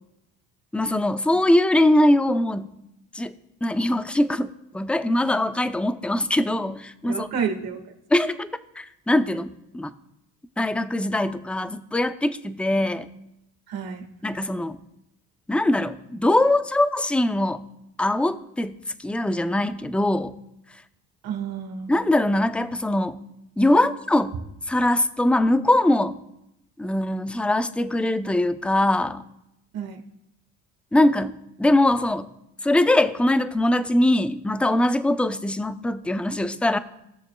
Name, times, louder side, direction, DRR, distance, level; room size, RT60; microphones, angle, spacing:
voice 1, 0.7-2.7 3.1-3.3 3.6-7.3 8.1-8.5 8.8-9.9 10.6-13.1 14.2-14.8 15.5-17.6 18.0-20.3 21.9-23.2 23.6-24.4 24.7-26.2 26.8-29.2 30.9-32.3 32.6-36.8, left 1 dB, 5° left, 12 dB, 0.6 m, -22 dB
voice 2, 7.0-7.8 13.7-14.1 21.2-21.9 29.7-30.0, right 6 dB, 65° right, 4 dB, 1.8 m, -30 dB
18.5 x 6.4 x 2.3 m, 0.85 s
supercardioid pair, 65°, 39 cm